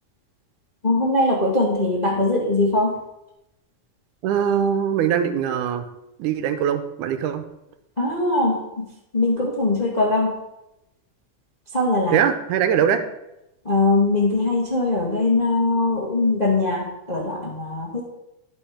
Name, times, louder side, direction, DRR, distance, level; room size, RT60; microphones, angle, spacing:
voice 1, 0.8-2.9 8.0-8.8 9.1-10.3 11.7-12.2 13.6-18.0, left 2 dB, 25° left, -3 dB, 1.0 m, -21 dB
voice 2, 4.2-5.9 6.2-7.4 12.1-13.0, right 8 dB, 85° right, 9 dB, 2.2 m, -21 dB
11.5 x 5.2 x 5.0 m, 0.90 s
omnidirectional pair, 3.5 m